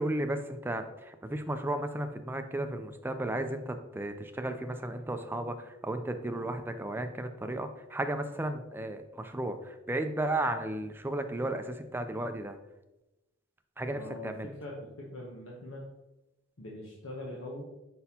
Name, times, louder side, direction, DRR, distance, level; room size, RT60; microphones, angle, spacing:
voice 1, 0.0-12.6 13.8-14.5, right 1 dB, 10° right, 7 dB, 0.4 m, -34 dB
voice 2, 13.9-15.8 16.6-17.6, left 1 dB, 80° left, -3 dB, 0.9 m, -42 dB
6.0 x 5.4 x 2.8 m, 0.97 s
head